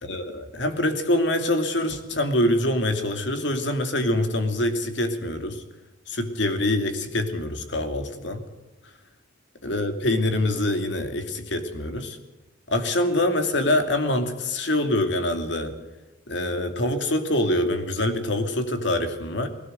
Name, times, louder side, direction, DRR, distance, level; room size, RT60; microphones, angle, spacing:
voice 1, 0.0-5.6 6.1-8.4 9.6-12.2 12.7-15.7 16.3-19.5, left 1 dB, 70° left, 6 dB, 2.7 m, -25 dB
19.5 x 17.0 x 8.0 m, 1.1 s
head